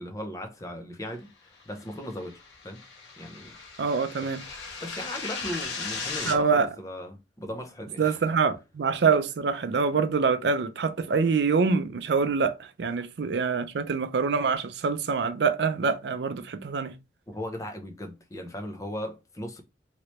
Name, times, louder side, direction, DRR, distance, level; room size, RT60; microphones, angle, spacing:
voice 1, 0.0-2.8 3.2-3.6 4.2-4.3 4.8-8.3 17.3-19.6, left 1 dB, 20° left, 0.6 m, -37 dB
sound 1, 1.9-6.4, left 4 dB, 90° left, 1.2 m, -37 dB
voice 2, 3.8-4.4 6.3-6.7 8.0-16.9, right 5 dB, 65° right, 0.4 m, -25 dB
3.0 x 3.0 x 3.0 m
head